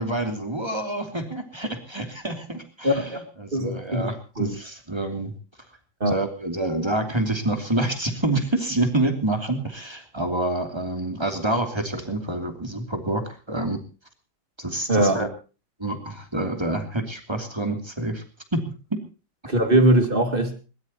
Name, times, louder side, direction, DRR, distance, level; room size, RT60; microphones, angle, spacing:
voice 1, 0.0-5.3 6.1-13.8 14.6-15.3 15.8-18.2 18.5-18.6 18.9-19.0, right 1 dB, 15° right, 5 dB, 2.8 m, -27 dB
voice 2, 2.8-3.2 3.5-4.5 6.0-6.2 14.9-15.2 19.5-20.6, right 1 dB, 30° right, 7 dB, 2.6 m, -21 dB
21.5 x 19.0 x 2.9 m, 0.34 s
omnidirectional pair, 2.0 m